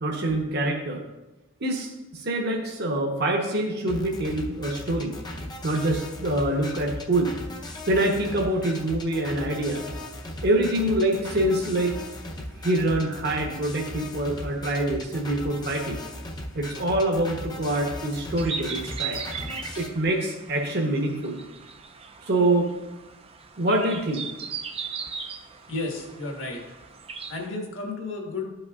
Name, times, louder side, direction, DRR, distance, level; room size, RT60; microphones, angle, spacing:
voice 1, 0.0-1.0 1.6-5.2 5.6-7.3 7.6-9.9 10.4-12.0 12.4-16.0 16.5-19.2 19.8-21.4 22.3-22.7 23.6-24.3, right 1 dB, 55° right, 1 dB, 1.0 m, -25 dB
sound 1, 3.9-19.9, left 1 dB, 20° left, 0.6 m, -37 dB
sound 2, 18.4-27.5, right 6 dB, 30° right, 0.4 m, -38 dB
voice 2, 25.7-26.6 27.3-28.5, left 3 dB, 65° left, 0 dB, 1.6 m, -32 dB
12.5 x 5.4 x 2.4 m, 1.1 s
head